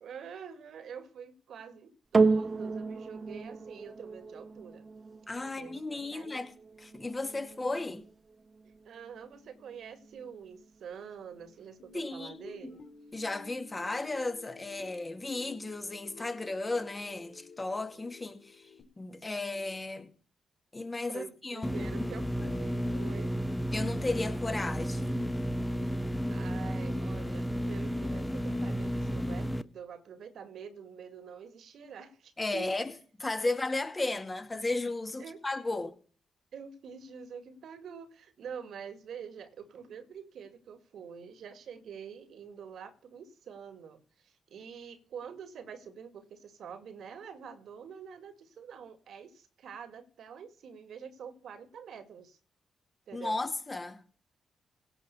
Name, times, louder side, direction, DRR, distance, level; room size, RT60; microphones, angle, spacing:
voice 1, 0.0-4.9 5.6-6.4 8.6-12.8 19.5-19.6 21.1-23.4 25.8-26.0 26.3-32.7 33.4-33.5 35.2-35.4 35.7-35.9 36.5-52.4 53.1-53.4, right 7 dB, 70° right, 2.0 m, -46 dB
sound 1, 2.1-10.7 11.4-11.5, right 4 dB, 45° right, 1.1 m, -33 dB
voice 2, 5.3-8.1 11.9-12.7 13.1-18.6 19.0-20.1 20.7-22.1 22.4-22.5 23.7-25.2 32.4-32.9 33.2-35.9 53.1-54.0, left 2 dB, 30° left, 2.2 m, -35 dB
sound 2, 11.8-18.8, left 5 dB, 65° left, 3.1 m, -53 dB
sound 3, 21.6-29.6, equal, 10° left, 0.9 m, -32 dB
17.0 x 5.6 x 6.9 m
hypercardioid pair, 45°, 0 cm